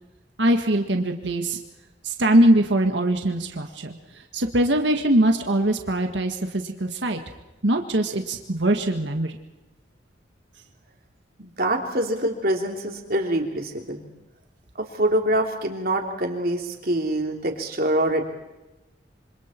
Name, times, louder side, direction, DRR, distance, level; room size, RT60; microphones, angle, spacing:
voice 1, 0.4-1.6 2.0-3.9 4.3-7.2 7.6-9.4, right 1 dB, 75° right, 4 dB, 1.7 m, -22 dB
voice 2, 11.4-14.0 14.8-18.3, right 1 dB, 55° right, 2 dB, 3.3 m, -25 dB
26.5 x 26.0 x 4.5 m, 1.0 s
head